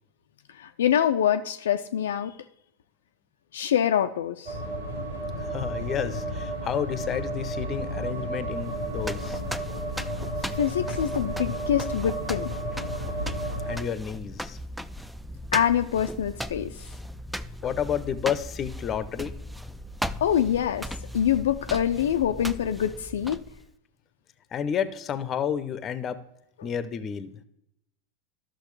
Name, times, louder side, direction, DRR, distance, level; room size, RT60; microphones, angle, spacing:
voice 1, 0.5-2.4 3.5-4.6 10.5-12.5 15.5-16.9 20.2-23.4 26.6-26.7, left 9 dB, 70° left, 7 dB, 0.4 m, -25 dB
sound 1, 4.5-13.8, right 1 dB, 80° right, 2.4 m, -32 dB
voice 2, 5.4-9.4 13.6-14.6 17.6-19.3 24.5-26.2 26.6-27.3, left 8 dB, 30° left, 14 dB, 0.7 m, -30 dB
sound 2, 8.6-23.7, equal, ahead, 0.4 m, -37 dB
13.0 x 6.4 x 3.2 m, 0.79 s
figure-of-eight pair, 90°, 0 cm